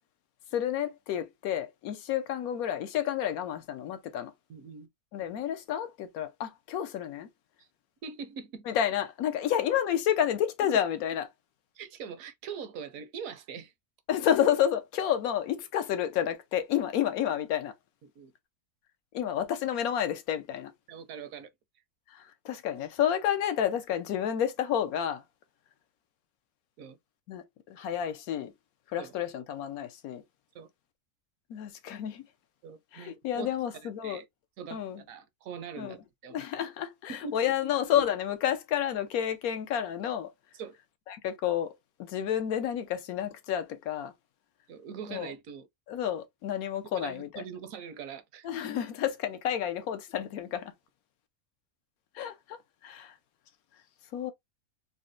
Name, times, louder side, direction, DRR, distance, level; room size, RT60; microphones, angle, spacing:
voice 1, 0.5-4.3 5.1-7.3 8.7-11.3 14.1-17.7 19.1-20.7 22.1-25.2 27.3-28.5 28.9-30.2 31.5-32.2 32.9-34.2 34.7-35.0 35.8-35.9 36.3-40.3 41.1-41.7 42.0-44.1 45.1-45.3 45.9-47.4 48.4-50.7 52.1-53.2 54.1-54.3, left 10 dB, 85° left, 1.1 m, -30 dB
voice 2, 4.5-4.9 8.0-8.6 11.8-13.7 18.0-18.3 20.9-21.5 26.8-27.0 29.0-29.1 30.5-30.7 32.6-33.5 33.8-34.2 34.6-34.8 35.1-36.0 36.2-36.4 37.1-37.5 40.5-40.8 44.7-45.7 46.9-48.5, right 6 dB, 75° right, 1.0 m, -42 dB
4.0 x 2.1 x 2.5 m
omnidirectional pair, 1.5 m